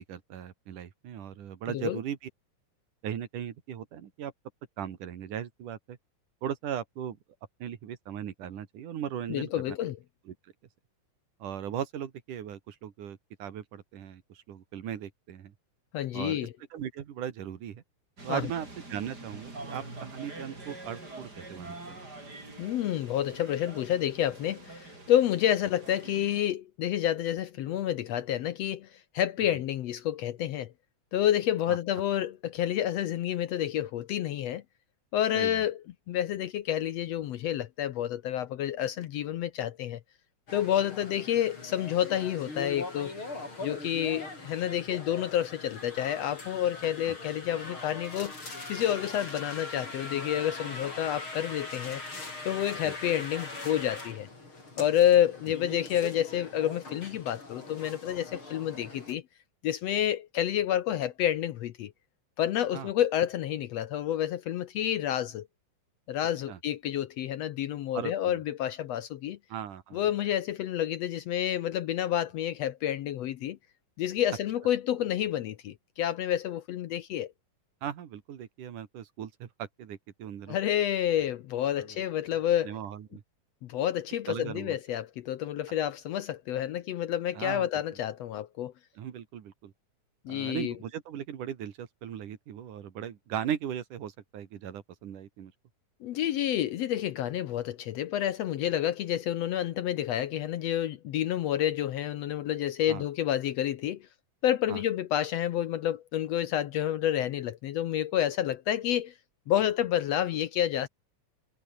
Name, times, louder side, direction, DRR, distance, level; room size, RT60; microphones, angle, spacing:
voice 1, 0.0-2.2 3.0-4.3 4.8-6.0 6.4-7.2 7.6-9.5 10.3-10.4 11.4-15.5 16.1-17.8 18.2-22.0 31.7-31.8 35.3-35.7 47.1-47.2 52.8-52.9 62.7-62.9 66.5-66.6 67.9-68.1 69.5-70.0 77.8-80.6 81.9-82.0 82.6-83.2 84.3-84.8 87.3-87.8 89.0-89.7 90.3-95.5 102.9-103.1 104.7-104.8, right 9 dB, 75° right, 3.5 m, -38 dB
voice 2, 1.7-2.0 9.3-10.0 15.9-16.5 18.3-18.4 22.6-28.9 29.1-30.7 31.1-34.6 35.1-40.0 40.5-43.1 43.6-48.3 48.7-52.0 52.4-54.3 54.8-59.2 59.6-61.9 62.4-65.5 66.1-69.4 69.9-73.6 74.0-77.3 80.5-82.7 83.6-88.7 90.3-90.7 96.0-104.0 104.4-109.1 109.5-110.9, left 11 dB, 70° left, 1.7 m, -29 dB
sound 1, 18.2-26.4, right 2 dB, 30° right, 6.8 m, -45 dB
sound 2, 40.5-59.1, left 3 dB, 40° left, 7.7 m, -41 dB
omnidirectional pair, 3.6 m